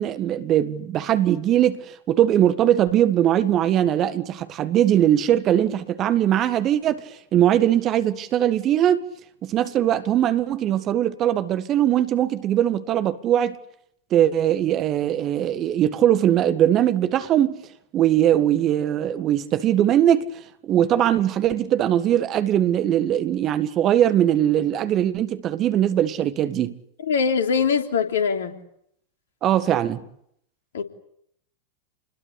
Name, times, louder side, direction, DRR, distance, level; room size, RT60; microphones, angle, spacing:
voice 1, 0.0-9.0 9.4-13.6 14.1-17.6 17.9-20.3 20.6-26.7 29.4-30.0, right 11 dB, 30° right, 1.8 m, -20 dB
voice 2, 27.1-28.5 30.7-30.8, left 6 dB, 60° left, 3.3 m, -22 dB
29.5 x 21.5 x 8.5 m
figure-of-eight pair, 90°, 0 cm